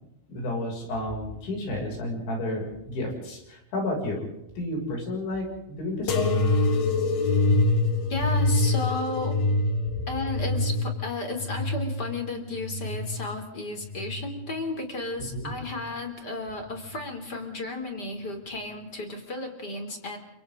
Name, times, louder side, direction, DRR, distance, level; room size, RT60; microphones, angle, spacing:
voice 1, 0.3-4.3 4.6-6.4 15.3-15.5, left 1 dB, 85° left, 0 dB, 9.0 m, -31 dB
sound 1, 6.1-13.3 13.8-14.6 15.3-15.9 16.8-17.0, left 2 dB, 55° left, 3.2 m, -25 dB
voice 2, 8.1-9.4 10.1-20.2, left 2 dB, 25° left, 4 dB, 3.3 m, -33 dB
29.5 x 27.0 x 3.9 m, 0.82 s
omnidirectional pair, 5.1 m